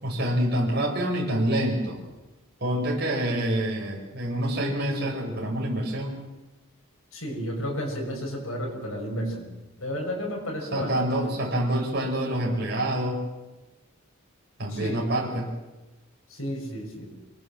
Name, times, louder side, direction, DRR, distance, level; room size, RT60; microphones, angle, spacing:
voice 1, 0.0-2.0 2.6-6.2 10.7-13.2 14.6-15.5, right 1 dB, 50° right, -1 dB, 6.2 m, -26 dB
voice 2, 7.1-9.5 9.8-10.9 11.3-11.4 14.7-15.1 16.3-17.1, equal, 80° left, 0 dB, 6.5 m, -32 dB
25.5 x 20.0 x 7.6 m, 1.1 s
head